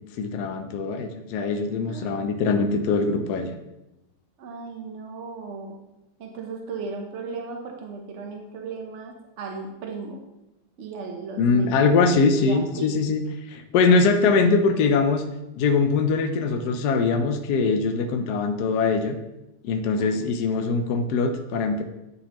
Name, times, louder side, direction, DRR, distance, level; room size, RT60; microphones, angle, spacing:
voice 1, 0.2-3.5 11.4-13.2 13.5-15.2 15.6-19.2 19.6-21.8, left 4 dB, 70° left, 5 dB, 1.1 m, -22 dB
voice 2, 4.4-5.8 6.2-10.2 10.8-12.1 12.4-12.9 20.0-20.1, right 4 dB, 55° right, 2 dB, 0.8 m, -36 dB
9.9 x 4.0 x 2.9 m, 0.93 s
omnidirectional pair, 1.9 m